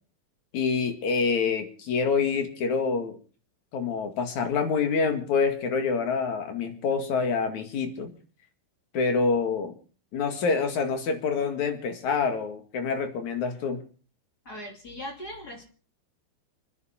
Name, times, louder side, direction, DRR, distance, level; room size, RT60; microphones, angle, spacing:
voice 1, 0.5-3.2 3.7-8.1 8.9-9.8 10.1-13.8, left 5 dB, 50° left, 5 dB, 3.0 m, -26 dB
voice 2, 14.4-15.6, equal, 25° left, 1 dB, 3.0 m, -39 dB
29.5 x 10.0 x 4.4 m, 0.40 s
omnidirectional pair, 4.8 m